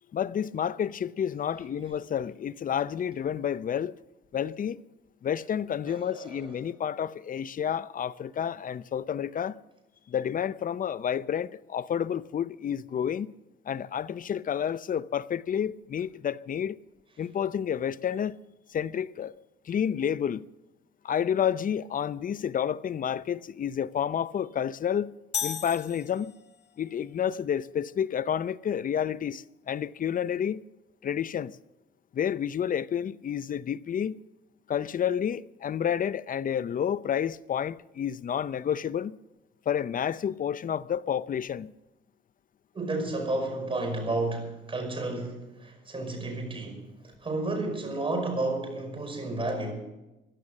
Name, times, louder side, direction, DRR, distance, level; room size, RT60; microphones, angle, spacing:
voice 1, 0.1-4.0 4.3-4.8 5.2-9.6 10.1-13.3 13.7-16.8 17.2-18.4 18.7-19.3 19.7-20.5 21.0-25.2 25.4-26.3 26.8-30.6 31.0-31.6 32.1-34.2 34.7-39.2 39.7-41.7, left 8 dB, 45° left, 0.6 m, -30 dB
voice 2, 5.8-6.5 42.7-46.9 47.2-49.7, right 2 dB, 25° right, 5.6 m, -32 dB
sound 1, 25.3-26.7, left 8 dB, 60° left, 1.7 m, -35 dB
16.5 x 12.0 x 6.4 m
cardioid pair, 90°, 20 cm